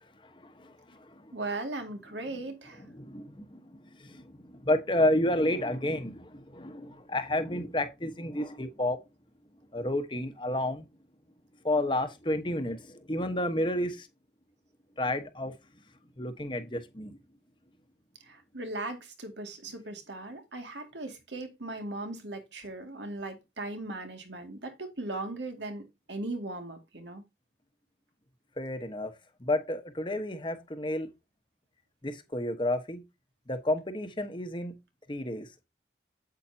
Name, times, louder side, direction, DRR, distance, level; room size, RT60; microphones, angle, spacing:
voice 1, 1.3-2.8 18.3-27.2, right 2 dB, 75° right, 2.2 m, -38 dB
voice 2, 2.9-3.4 4.0-4.2 4.6-9.0 9.7-10.8 11.6-14.1 15.0-15.5 16.2-17.1 28.6-29.1 29.4-31.1 32.0-33.0 33.5-34.7 35.1-35.6, left 1 dB, 25° left, 1.1 m, -30 dB
8.8 x 8.2 x 2.8 m
head